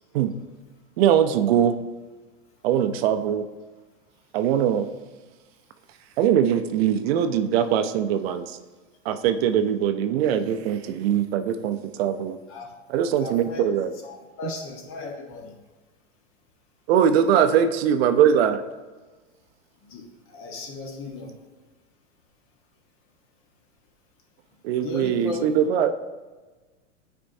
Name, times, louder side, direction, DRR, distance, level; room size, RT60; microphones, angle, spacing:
voice 1, 1.0-1.7 2.6-3.5 4.3-4.9 6.2-8.6 9.1-12.4 12.9-13.9 16.9-18.6 24.6-25.9, right 9 dB, 55° right, 9 dB, 0.5 m, -21 dB
voice 2, 13.1-13.7 13.9-15.5 17.3-17.4 19.8-21.4 24.8-25.6, left 3 dB, 35° left, 2 dB, 1.2 m, -36 dB
8.6 x 4.3 x 2.7 m, 1.3 s
hypercardioid pair, 120°, 36 cm